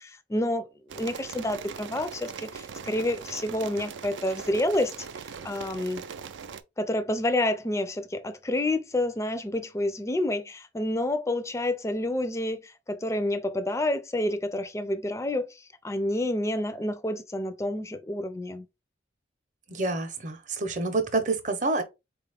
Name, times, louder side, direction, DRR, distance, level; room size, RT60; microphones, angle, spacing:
voice 1, 0.0-5.1 5.4-6.0 6.8-18.7, left 1 dB, 15° left, 0.3 m, -29 dB
sound 1, 0.9-6.6, right 6 dB, 80° right, 0.4 m, -40 dB
voice 2, 19.7-21.8, right 3 dB, 40° right, 0.7 m, -28 dB
4.0 x 2.4 x 3.3 m
head